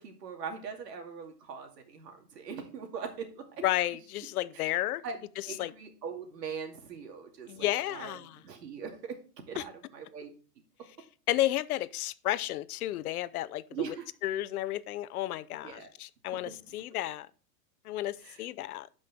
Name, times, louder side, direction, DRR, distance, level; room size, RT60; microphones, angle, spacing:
voice 1, 0.0-3.4 4.5-4.7 5.0-5.2 5.5-8.2 8.4-9.2 9.5-10.3 13.7-14.0 15.6-15.9 16.3-16.5 18.2-18.4, right 6 dB, 85° right, 2.5 m, -41 dB
voice 2, 3.6-5.0 5.4-5.7 7.5-8.4 9.6-9.7 11.3-13.6 14.2-17.3 17.8-18.9, left 14 dB, 65° left, 0.7 m, -32 dB
11.5 x 5.4 x 3.6 m
supercardioid pair, 160°, 48 cm